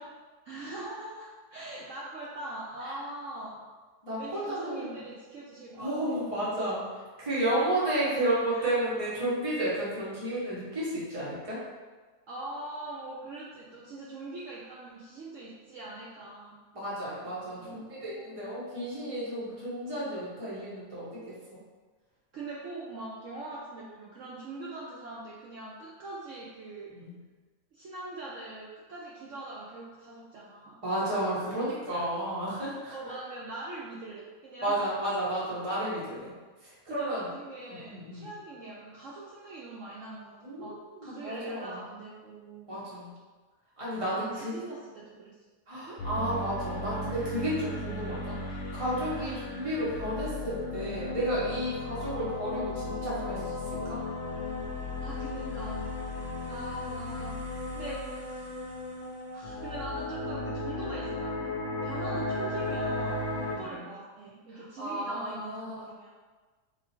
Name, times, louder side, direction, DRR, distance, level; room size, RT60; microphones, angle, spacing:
voice 1, 0.4-3.6 4.2-6.2 7.5-7.7 8.5-8.7 12.3-16.6 17.6-18.6 22.3-26.9 27.7-31.1 31.9-32.1 32.9-34.8 36.9-42.8 44.0-45.4 45.9-46.0 49.1-49.3 55.0-55.9 56.5-58.6 59.3-61.5 61.8-66.1, right 2 dB, 65° right, -5 dB, 0.8 m, -42 dB
voice 2, 4.0-5.0 5.7-11.6 16.7-21.6 26.9-27.1 30.8-33.1 34.6-36.3 36.6-37.3 37.7-38.3 40.4-41.8 42.7-43.1 43.8-44.5 45.7-54.0 62.0-62.1 63.4-63.9 64.5-65.9, right 1 dB, 20° right, -9 dB, 1.4 m, -32 dB
sound 1, 46.0-63.6, left 2 dB, 55° left, 1.0 m, -35 dB
3.9 x 3.0 x 4.3 m, 1.4 s
omnidirectional pair, 1.8 m